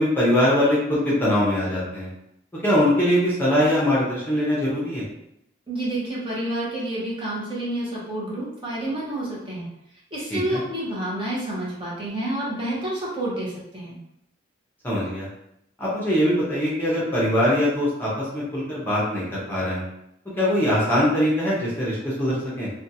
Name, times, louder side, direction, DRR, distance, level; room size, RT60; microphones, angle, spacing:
voice 1, 0.0-2.1 2.5-5.0 10.3-10.6 14.8-15.3 15.8-19.8 20.4-22.7, equal, 10° left, -7 dB, 0.7 m, -22 dB
voice 2, 5.7-9.7 10.1-14.0, right 1 dB, 25° right, -6 dB, 0.8 m, -29 dB
2.6 x 2.2 x 2.7 m, 0.78 s
head